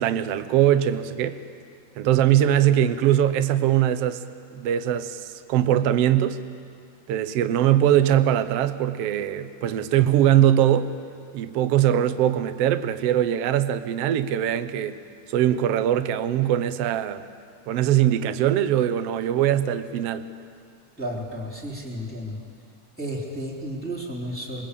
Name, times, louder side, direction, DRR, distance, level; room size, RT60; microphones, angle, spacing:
voice 1, 0.0-1.4 2.0-4.2 4.5-5.2 5.5-6.4 7.1-10.9 11.3-15.0 15.3-17.2 17.7-20.2, right 11 dB, 80° right, 12 dB, 1.4 m, -21 dB
voice 2, 21.0-22.4 23.0-24.6, equal, 5° left, -3 dB, 3.1 m, -32 dB
27.5 x 22.5 x 8.4 m, 2.4 s
omnidirectional pair, 4.0 m